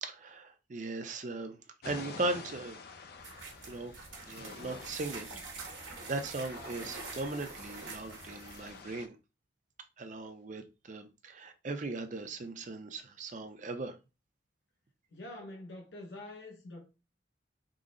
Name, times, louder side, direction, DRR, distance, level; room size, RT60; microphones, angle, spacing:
voice 1, 0.0-1.6 1.8-2.8 3.6-3.9 4.2-5.3 5.8-9.2 10.0-13.9, right 2 dB, 40° right, 0.5 m, -38 dB
sound 1, 1.8-9.1, left 4 dB, 55° left, 0.5 m, -49 dB
sound 2, 3.2-8.8, right 4 dB, 75° right, 1.2 m, -46 dB
voice 2, 15.1-16.9, left 1 dB, 70° left, 0.8 m, -46 dB
3.7 x 2.0 x 3.7 m
head